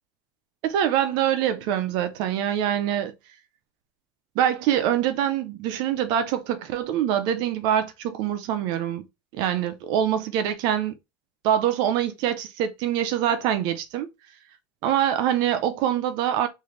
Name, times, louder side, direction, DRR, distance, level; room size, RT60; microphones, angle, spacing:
voice 1, 0.6-3.1 4.4-9.0 9.3-10.9 11.4-14.1 14.8-16.5, right 10 dB, 50° right, 0.6 m, -24 dB
3.2 x 2.6 x 3.8 m
cardioid pair, 180°, 10 cm